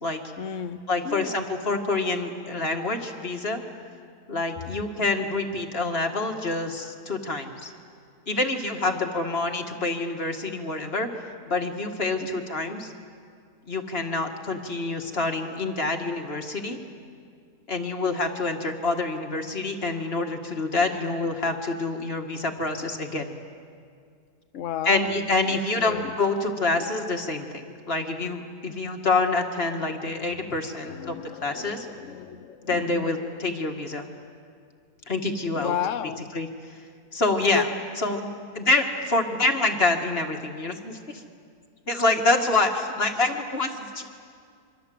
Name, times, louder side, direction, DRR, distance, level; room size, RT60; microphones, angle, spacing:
voice 1, 0.4-1.4 5.0-5.3 8.8-9.1 12.2-12.4 20.8-21.2 24.5-26.2 30.4-33.3 35.6-36.3 37.5-37.7, left 8 dB, 55° left, 14 dB, 1.1 m, -34 dB
voice 2, 0.9-3.6 4.3-7.7 8.3-11.1 11.5-12.9 13.7-16.8 17.7-23.3 24.9-31.9 32.7-34.1 35.1-35.7 36.3-36.5 37.1-37.7 38.0-38.3 38.5-41.2 41.9-44.0, left 3 dB, 35° left, 4 dB, 1.9 m, -26 dB
26.5 x 24.5 x 7.7 m, 2.2 s
omnidirectional pair, 1.8 m